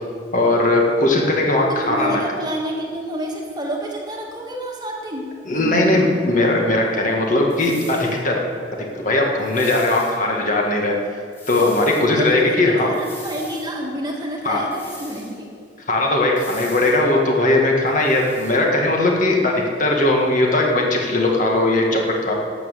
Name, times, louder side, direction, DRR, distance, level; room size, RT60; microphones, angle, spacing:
voice 1, 0.3-2.2 5.5-8.3 8.9-10.9 11.5-12.9 14.5-14.6 15.9-22.3, left 2 dB, 45° left, 0 dB, 1.7 m, -19 dB
voice 2, 1.7-6.1 12.1-15.5, right 1 dB, 20° right, -1 dB, 1.5 m, -29 dB
sound 1, 7.5-8.2 9.4-10.2 11.3-12.1 12.9-13.7 14.7-15.4 16.4-17.0 17.9-18.6, left 2 dB, 15° left, 2.6 m, -41 dB
12.0 x 7.4 x 6.6 m, 2.1 s
head